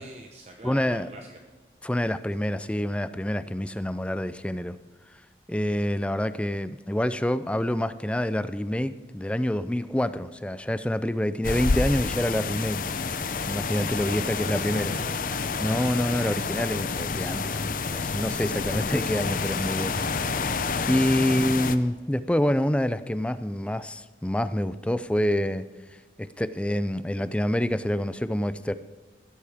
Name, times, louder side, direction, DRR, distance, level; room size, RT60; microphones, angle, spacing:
voice 1, 0.0-1.4 5.5-5.6 14.0-15.7 19.9-20.2 21.1-21.4, right 1 dB, 35° right, 2 dB, 0.9 m, -45 dB
voice 2, 0.6-1.1 1.8-4.8 5.1-5.2 5.5-12.8 13.5-14.9 15.6-20.0 20.9-25.6 26.2-28.7, left 1 dB, 5° left, 14 dB, 0.4 m, -27 dB
sound 1, 11.4-21.8, left 4 dB, 50° left, 0.6 m, -29 dB
15.5 x 13.0 x 3.6 m, 1.4 s
head